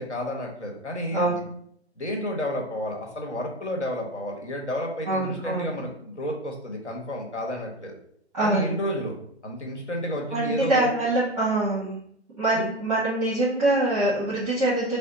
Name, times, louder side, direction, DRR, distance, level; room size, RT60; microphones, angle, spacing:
voice 1, 0.0-1.3 2.0-7.9 8.4-9.2 9.4-10.9 12.5-12.6, equal, 85° left, 1 dB, 1.2 m, -31 dB
voice 2, 5.1-5.8 8.3-8.7 10.3-11.9 12.4-15.0, right 2 dB, 5° right, -9 dB, 0.7 m, -24 dB
4.3 x 2.0 x 3.9 m, 0.67 s
figure-of-eight pair, 150°, 34 cm